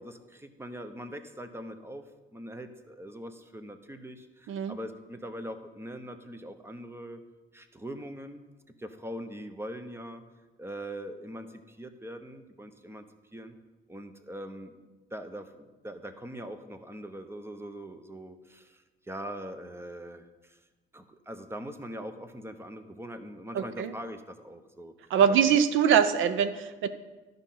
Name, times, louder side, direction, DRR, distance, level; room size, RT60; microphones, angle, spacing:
voice 1, 0.0-2.0 2.3-7.2 7.5-8.4 8.8-10.2 10.6-13.0 13.3-13.5 13.9-14.8 15.1-20.6 20.9-25.6, equal, 10° right, 9 dB, 0.8 m, -42 dB
voice 2, 23.5-23.9 25.1-26.9, right 8 dB, 80° right, 11 dB, 0.7 m, -23 dB
12.0 x 5.2 x 5.8 m, 1.2 s
cardioid pair, 90°, 20 cm